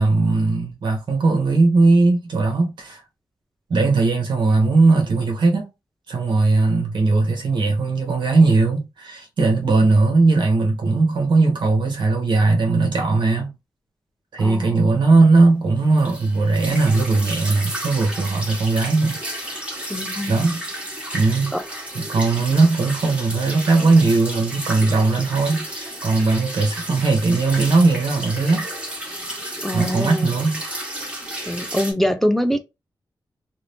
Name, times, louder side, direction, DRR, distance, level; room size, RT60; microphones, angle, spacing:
voice 1, 0.0-3.0 3.7-5.7 6.1-13.5 14.3-19.2 20.3-20.6 21.1-21.5 21.9-28.7 29.7-30.6, right 3 dB, 90° right, 1.1 m, -18 dB
voice 2, 14.4-14.9 19.9-20.5 21.5-21.6 29.6-30.3 31.5-32.6, equal, 5° left, 0.4 m, -24 dB
sound 1, 16.0-31.9, right 1 dB, 15° right, 1.2 m, -32 dB
2.7 x 2.5 x 3.3 m
wide cardioid pair, 165°, 8 cm